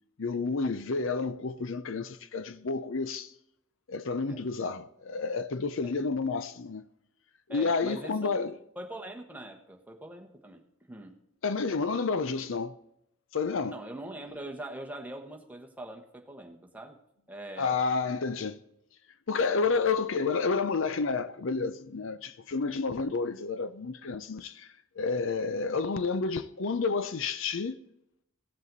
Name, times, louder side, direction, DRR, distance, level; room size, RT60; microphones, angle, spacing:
voice 1, 0.2-3.3 3.9-6.8 7.5-8.5 11.4-12.7 13.3-13.8 17.6-18.6 19.3-27.8, left 4 dB, 60° left, 0.6 m, -30 dB
voice 2, 7.5-8.4 8.8-10.6 10.9-11.2 13.7-17.0 17.3-17.8 19.5-19.7, right 1 dB, 10° right, 1.2 m, -42 dB
16.5 x 7.5 x 4.1 m
head